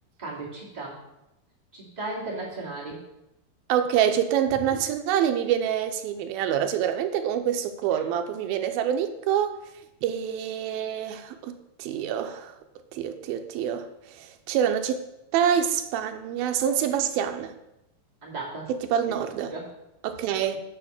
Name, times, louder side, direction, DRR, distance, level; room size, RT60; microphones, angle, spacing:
voice 1, 0.2-1.0 1.7-3.0 18.2-18.7 19.5-19.7, right 2 dB, 15° right, -5 dB, 2.0 m, -35 dB
voice 2, 3.7-9.5 10.0-12.5 12.9-15.0 15.3-17.5 18.7-19.5 20.0-20.6, right 9 dB, 80° right, 7 dB, 2.3 m, -26 dB
7.2 x 6.5 x 6.4 m, 0.87 s
omnidirectional pair, 4.6 m